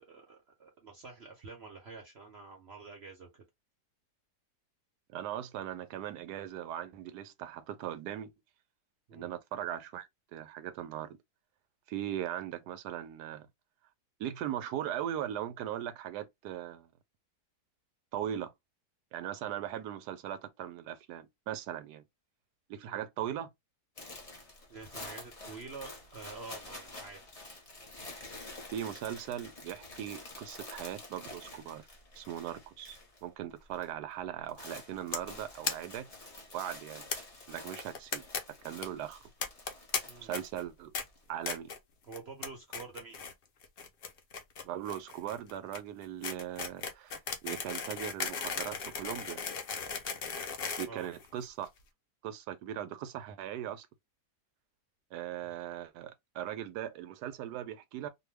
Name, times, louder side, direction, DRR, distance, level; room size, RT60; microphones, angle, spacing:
voice 1, 0.0-3.3 9.1-9.3 22.8-23.0 24.7-27.2 40.1-40.3 42.0-43.2 50.8-51.1 55.4-55.5, right 4 dB, 55° right, 0.7 m, -48 dB
voice 2, 5.1-8.3 9.1-11.2 11.9-13.5 14.2-16.9 18.1-18.5 19.1-22.0 22.7-23.5 28.7-31.9 32.2-36.1 36.5-37.1 37.5-38.2 38.6-39.2 40.2-40.9 41.3-41.7 44.6-49.4 50.8-51.7 52.2-53.9 55.1-58.1, right 11 dB, 80° right, 1.1 m, -39 dB
sound 1, 24.0-33.3 33.5-33.9 34.2-41.2, left 2 dB, 30° left, 0.8 m, -49 dB
sound 2, 35.1-35.3 35.6-35.7 36.0-36.1 36.3-36.4 37.1-37.2 37.7-38.4 38.7-38.9 39.4-40.0 40.3-40.6 40.9-41.0 41.5-41.8 42.1-42.5 42.7-43.3 43.6-51.7, left 5 dB, 80° left, 0.5 m, -36 dB
2.6 x 2.2 x 3.2 m
omnidirectional pair, 1.7 m